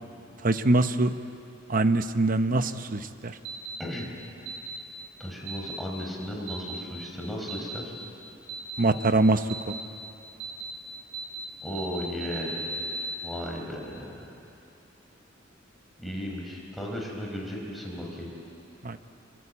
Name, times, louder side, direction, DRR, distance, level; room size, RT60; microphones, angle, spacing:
voice 1, 0.4-1.1 1.7-3.3 8.8-9.4 18.8-19.0, right 2 dB, 45° right, 10 dB, 0.9 m, -23 dB
sound 1, 3.4-3.8 4.5-4.8 5.5-5.8 6.5-6.8 7.5-7.8 8.5-8.8 9.5-9.8 10.4-10.7 11.1-11.4 11.7-13.1, right 3 dB, 80° right, 3.3 m, -36 dB
voice 2, 3.8-4.1 5.2-7.9 11.6-12.6 13.2-14.1 16.0-18.3, equal, ahead, -2 dB, 4.7 m, -35 dB
27.0 x 22.0 x 8.5 m, 2.8 s
head